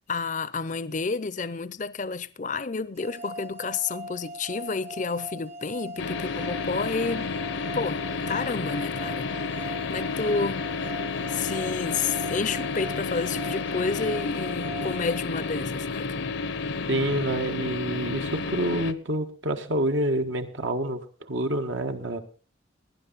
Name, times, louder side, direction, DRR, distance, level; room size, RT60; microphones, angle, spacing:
voice 1, 0.1-7.3 7.7-9.3 9.6-10.7 11.3-16.3, left 4 dB, 40° left, 0.6 m, -30 dB
sound 1, 3.0-15.9, equal, 35° right, 1.1 m, -40 dB
sound 2, 6.0-18.9, left 4 dB, 70° left, 0.8 m, -31 dB
voice 2, 16.9-22.2, right 1 dB, 75° right, 1.6 m, -28 dB
18.0 x 10.5 x 4.0 m
head